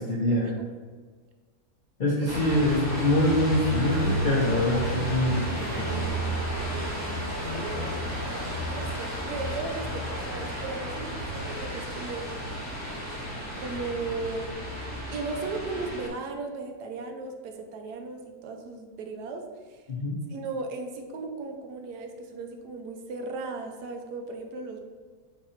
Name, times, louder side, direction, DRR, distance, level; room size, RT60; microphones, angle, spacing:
voice 1, 0.1-0.5 2.0-6.3 19.9-20.2, left 1 dB, 60° left, -5 dB, 0.5 m, -25 dB
sound 1, 2.3-16.1, right 1 dB, 10° right, 0.9 m, -32 dB
voice 2, 7.5-12.3 13.6-14.6 15.1-19.8 20.3-24.8, right 3 dB, 75° right, 4 dB, 1.1 m, -36 dB
4.6 x 2.6 x 4.2 m, 1.5 s
omnidirectional pair, 1.8 m